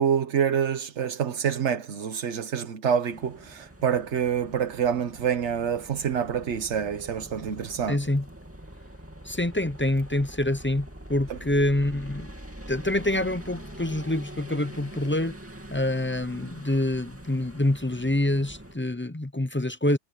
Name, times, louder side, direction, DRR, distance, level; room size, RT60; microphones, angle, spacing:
voice 1, 0.0-8.0 11.3-11.4, right 8 dB, 70° right, 1.3 m, -27 dB
sound 1, 3.0-18.8, right 1 dB, 10° right, 2.5 m, -44 dB
voice 2, 7.9-8.3 9.2-12.3 12.7-15.4 15.7-20.0, left 1 dB, 15° left, 0.5 m, -26 dB
omnidirectional pair, 1.2 m